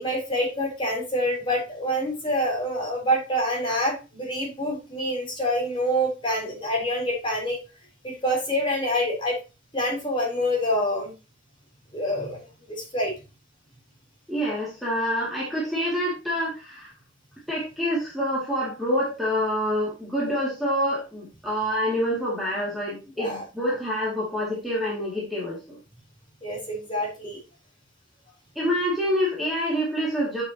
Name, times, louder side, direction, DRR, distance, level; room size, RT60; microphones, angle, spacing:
voice 1, 0.0-7.6 8.0-9.4 9.7-11.1 11.9-12.4 12.7-13.1 23.2-23.4 26.4-27.4, equal, 25° left, -2 dB, 3.6 m, -26 dB
voice 2, 14.3-16.9 17.5-25.8 28.6-30.4, equal, ahead, -6 dB, 2.3 m, -27 dB
9.1 x 6.5 x 2.9 m, 0.29 s
head